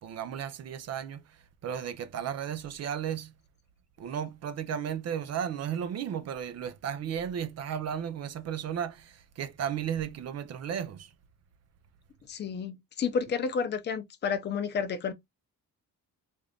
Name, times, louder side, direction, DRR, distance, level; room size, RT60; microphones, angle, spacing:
voice 1, 0.0-1.2 1.6-3.3 4.0-11.1, right 8 dB, 45° right, 0.5 m, -34 dB
voice 2, 12.3-15.1, left 6 dB, 30° left, 0.6 m, -31 dB
3.7 x 2.6 x 3.3 m
cardioid pair, 170°, 35 cm